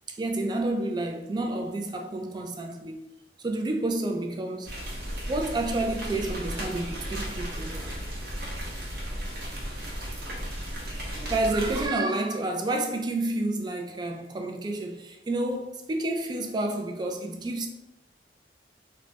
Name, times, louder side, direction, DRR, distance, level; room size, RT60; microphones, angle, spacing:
voice 1, 0.1-3.0 3.4-4.7 5.3-8.0 9.1-9.3 11.1-17.7, right 2 dB, 25° right, 0.3 m, -30 dB
sound 1, 4.6-11.9, equal, 60° right, 0.7 m, -35 dB
2.2 x 2.1 x 3.8 m
head